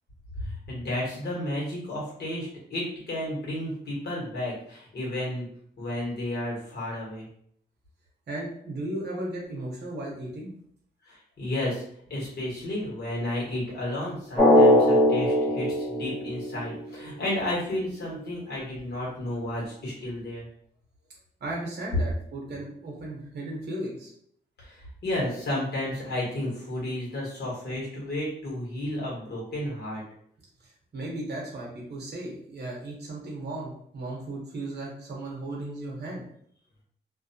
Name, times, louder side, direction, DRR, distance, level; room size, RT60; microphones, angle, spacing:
voice 1, 0.4-5.5 5.8-7.3 11.0-11.8 12.1-20.5 24.6-30.0, left 1 dB, 60° left, -4 dB, 1.3 m, -32 dB
voice 2, 8.3-10.5 21.4-24.1 30.6-36.2, right 1 dB, 65° right, -3 dB, 0.9 m, -36 dB
Drum, 14.4-17.0, left 1 dB, 10° left, 0.9 m, -20 dB
2.5 x 2.2 x 2.7 m, 0.65 s
cardioid pair, 95°, 19 cm